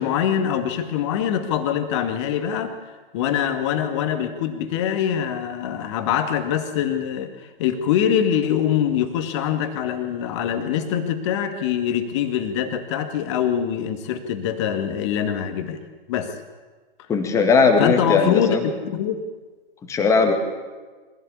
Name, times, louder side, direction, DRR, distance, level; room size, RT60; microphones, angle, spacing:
voice 1, 0.0-2.8 3.1-15.8 16.1-16.4 17.8-19.2, left 9 dB, 30° left, 7 dB, 2.1 m, -24 dB
voice 2, 17.1-18.6 19.9-20.3, left 4 dB, 10° left, 5 dB, 2.2 m, -18 dB
24.0 x 16.0 x 8.5 m, 1.3 s
figure-of-eight pair, 125°, 30 cm